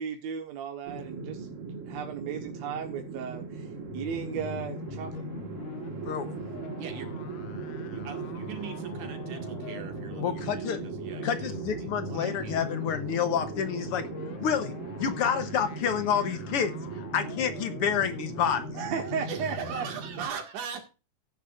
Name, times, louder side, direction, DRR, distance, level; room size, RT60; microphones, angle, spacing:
voice 1, 0.0-1.5 1.9-3.7 3.9-5.2 18.7-19.9, right 7 dB, 65° right, 2.4 m, -35 dB
sound 1, 0.9-20.3, right 4 dB, 35° right, 1.4 m, -39 dB
sound 2, 3.8-19.8, left 10 dB, 90° left, 2.3 m, -43 dB
voice 2, 6.7-7.3 7.9-11.6 12.0-12.6 19.3-20.8, right 7 dB, 80° right, 3.5 m, -40 dB
voice 3, 10.2-10.8 11.2-14.1 14.4-14.7 15.0-18.6, left 8 dB, 65° left, 1.5 m, -29 dB
15.0 x 10.0 x 2.5 m
omnidirectional pair, 3.4 m